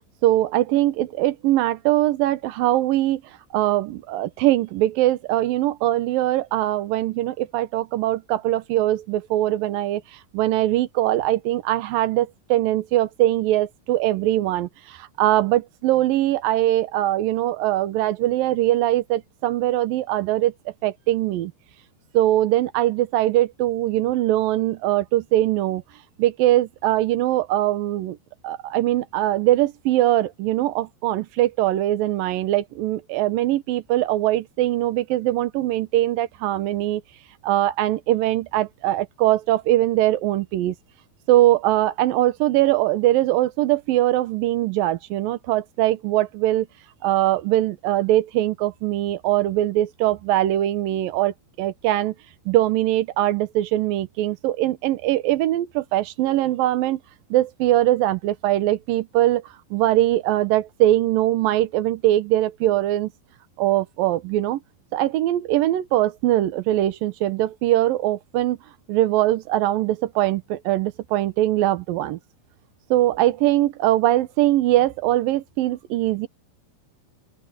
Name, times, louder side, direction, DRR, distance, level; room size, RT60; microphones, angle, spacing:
voice 1, 0.2-3.2 3.5-21.5 22.1-25.8 26.2-28.2 28.4-37.0 37.4-40.8 41.3-46.7 47.0-52.2 52.5-57.0 57.3-59.4 59.7-63.1 63.6-64.6 64.9-68.6 68.9-72.2 72.9-76.3, right 14 dB, 75° right, 2.8 m, -21 dB
open air
omnidirectional pair, 4.3 m